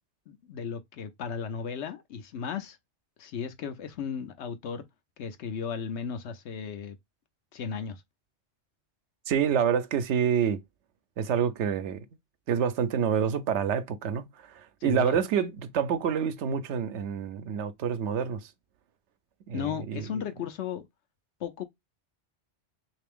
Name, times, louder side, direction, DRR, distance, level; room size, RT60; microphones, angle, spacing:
voice 1, 0.3-2.8 3.2-4.8 5.2-7.0 7.5-8.0 14.8-15.2 19.5-20.9 21.4-21.6, left 6 dB, 80° left, 1.0 m, -35 dB
voice 2, 9.3-10.6 11.2-12.1 12.5-18.5 19.5-20.1, right 8 dB, 85° right, 0.9 m, -27 dB
3.3 x 2.8 x 3.5 m
omnidirectional pair, 1.1 m